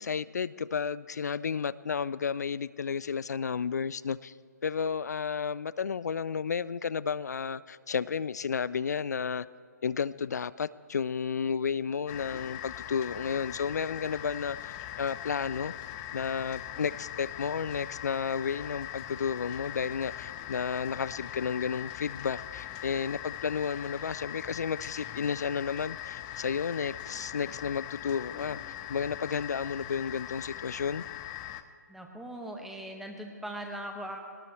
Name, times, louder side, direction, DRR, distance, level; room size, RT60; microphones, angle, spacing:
voice 1, 0.0-4.3 4.6-9.5 9.8-15.7 16.1-31.0, left 6 dB, 65° left, 18 dB, 0.4 m, -32 dB
sound 1, 12.1-31.6, left 13 dB, 25° left, 0.6 m, -41 dB
voice 2, 31.9-34.2, right 1 dB, ahead, 2 dB, 1.6 m, -40 dB
21.5 x 19.0 x 3.3 m, 2.2 s
figure-of-eight pair, 135°, 10 cm